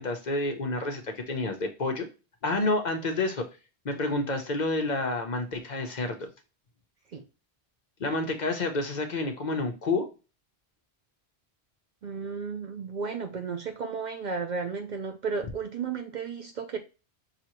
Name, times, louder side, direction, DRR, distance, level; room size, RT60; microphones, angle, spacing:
voice 1, 0.0-2.1 2.4-3.4 3.8-6.3 8.0-10.1, left 2 dB, 50° left, 0.8 m, -29 dB
voice 2, 12.0-16.8, right 5 dB, 55° right, 0.6 m, -33 dB
5.9 x 2.8 x 2.9 m
omnidirectional pair, 1.1 m